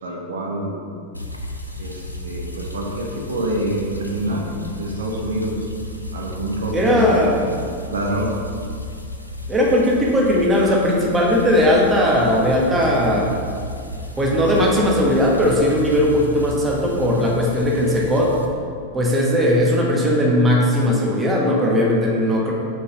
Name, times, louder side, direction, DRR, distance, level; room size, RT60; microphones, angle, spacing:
voice 1, 0.0-0.9 1.8-4.5 4.8-5.7 6.1-7.2 7.9-8.3, right 1 dB, 65° right, -1 dB, 1.0 m, -26 dB
sound 1, 1.1-18.5, left 1 dB, 85° left, 0.5 m, -34 dB
voice 2, 6.7-7.4 9.5-13.3 14.2-18.3 18.9-22.5, left 1 dB, 15° right, -2 dB, 1.2 m, -18 dB
5.3 x 5.0 x 5.3 m, 2.3 s
figure-of-eight pair, 90°, 0 cm